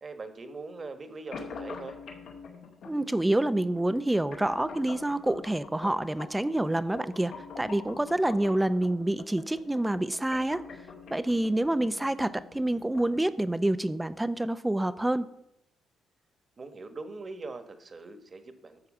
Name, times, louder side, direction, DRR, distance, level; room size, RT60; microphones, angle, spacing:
voice 1, 0.0-2.0 16.6-18.9, right 3 dB, 35° right, 8 dB, 1.3 m, -42 dB
sound 1, 1.3-13.3, left 4 dB, 75° left, 2.2 m, -45 dB
voice 2, 2.9-10.6 11.1-15.3, right 1 dB, 10° right, 14 dB, 0.5 m, -27 dB
11.5 x 4.8 x 7.3 m, 0.82 s
cardioid pair, 90°, 0 cm